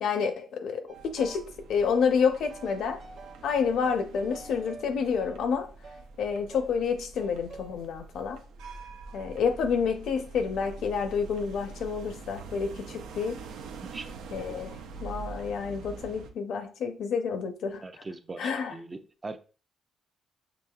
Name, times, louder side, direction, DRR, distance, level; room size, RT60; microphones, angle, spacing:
voice 1, 0.0-3.0 3.4-5.7 6.2-8.4 9.1-13.4 14.3-14.7 15.0-17.8 18.4-18.8, left 6 dB, 75° left, 0.6 m, -29 dB
sound 1, 0.9-1.5 1.8-6.1 6.5-6.7 7.2-7.7, right 4 dB, 55° right, 0.9 m, -47 dB
sound 2, 0.9-16.3, right 4 dB, 90° right, 0.5 m, -45 dB
voice 2, 13.8-14.6 17.8-19.4, right 3 dB, 30° right, 0.4 m, -41 dB
5.9 x 2.8 x 2.3 m
cardioid pair, 90°, 0 cm